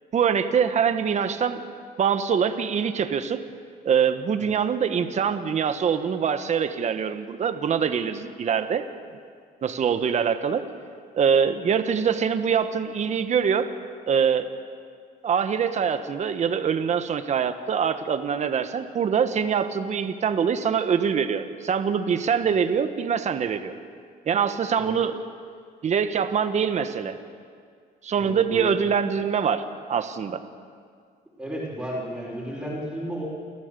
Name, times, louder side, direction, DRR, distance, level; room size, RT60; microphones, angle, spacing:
voice 1, 0.1-1.7 2.0-3.4 3.8-8.9 9.6-10.6 11.2-13.7 14.1-14.5 15.2-23.7 24.3-25.2 25.8-27.1 28.0-30.4, right 7 dB, 45° right, 9 dB, 1.4 m, -24 dB
voice 2, 28.2-28.7 31.4-33.2, right 1 dB, 5° right, -5 dB, 5.5 m, -33 dB
28.5 x 14.5 x 7.0 m, 2.1 s
cardioid pair, 110°, 17 cm